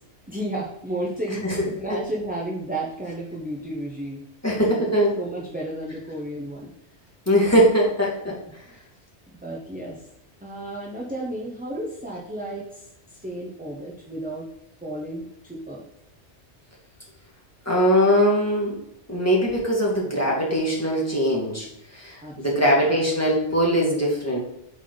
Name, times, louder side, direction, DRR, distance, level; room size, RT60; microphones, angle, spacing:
voice 1, 0.3-4.2 4.5-6.7 7.4-7.6 8.6-8.8 9.3-10.1 10.4-14.5 14.8-15.8 22.2-22.7, right 1 dB, 10° right, -4 dB, 0.9 m, -33 dB
voice 2, 4.4-5.2 7.3-8.4 17.7-18.8 19.1-21.7 21.9-24.4, equal, 15° left, -4 dB, 2.0 m, -21 dB
8.1 x 4.2 x 4.0 m, 0.80 s
omnidirectional pair, 1.2 m